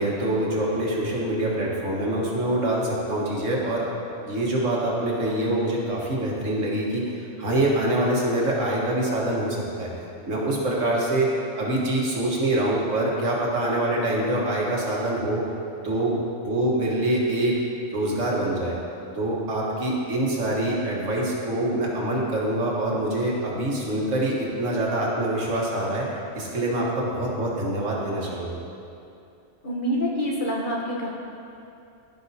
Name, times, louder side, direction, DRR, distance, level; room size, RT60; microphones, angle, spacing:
voice 1, 0.0-3.8 4.2-15.4 15.8-17.6 17.9-18.8 19.1-28.6, right 1 dB, 75° right, -4 dB, 1.7 m, -25 dB
voice 2, 29.6-31.1, equal, 45° left, -4 dB, 1.1 m, -26 dB
14.5 x 5.6 x 2.8 m, 2.7 s
omnidirectional pair, 1.3 m